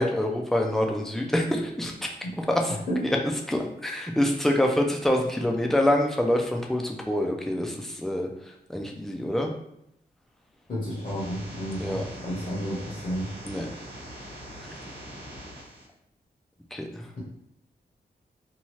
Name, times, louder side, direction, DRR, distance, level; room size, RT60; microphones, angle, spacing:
voice 1, 0.0-1.9 2.5-2.7 3.0-3.2 3.5-8.3 8.7-9.5 11.8-12.1 13.4-13.7 16.7-17.0, left 1 dB, ahead, 1 dB, 0.3 m, -26 dB
voice 2, 10.7-12.0 12.2-13.3, equal, 50° left, -6 dB, 0.9 m, -31 dB
sound 1, 10.8-15.8, equal, 75° right, 1.1 m, -42 dB
2.8 x 2.3 x 3.0 m, 0.77 s
wide cardioid pair, 155°, 17 cm